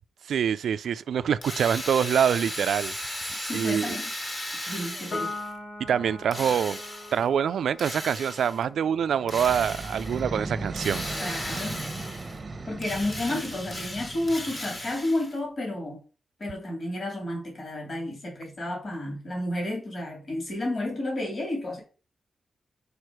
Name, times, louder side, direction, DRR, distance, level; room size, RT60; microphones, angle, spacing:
voice 1, 0.3-3.3 3.5-4.0 5.9-6.8 7.1-11.0, right 8 dB, 85° right, 0.3 m, -25 dB
Drill, 1.4-5.6 6.3-7.3 7.8-8.6 9.3-10.2 10.8-12.4 12.8-15.4, left 1 dB, 30° left, 1.7 m, -36 dB
voice 2, 3.4-4.1 4.7-5.3 11.2-11.9 12.7-16.0 16.4-21.8, left 1 dB, 50° left, 2.8 m, -31 dB
Piano, 5.1-11.8, left 2 dB, 85° left, 2.2 m, -42 dB
sound 1, 9.0-15.0, right 3 dB, 40° right, 0.9 m, -37 dB
5.1 x 4.6 x 4.8 m
cardioid pair, 80°, 0 cm